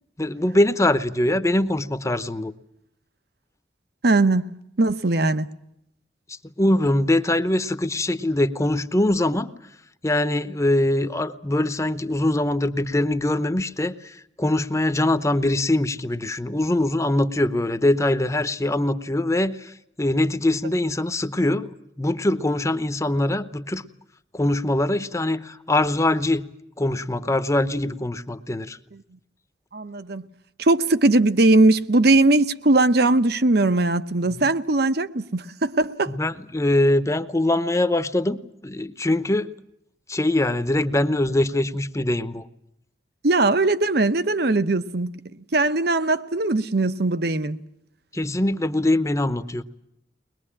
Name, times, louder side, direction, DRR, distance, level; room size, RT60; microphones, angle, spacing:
voice 1, 0.2-2.5 6.3-9.5 10.0-23.8 24.3-26.4 26.8-28.8 34.3-34.5 36.1-39.5 40.1-42.5 48.1-49.6, left 1 dB, 15° left, 0.8 m, -23 dB
voice 2, 4.0-4.5 4.8-5.5 29.7-30.3 30.6-36.1 43.2-45.1 45.5-47.6, right 2 dB, 60° right, 1.0 m, -20 dB
22.5 x 21.0 x 8.7 m
head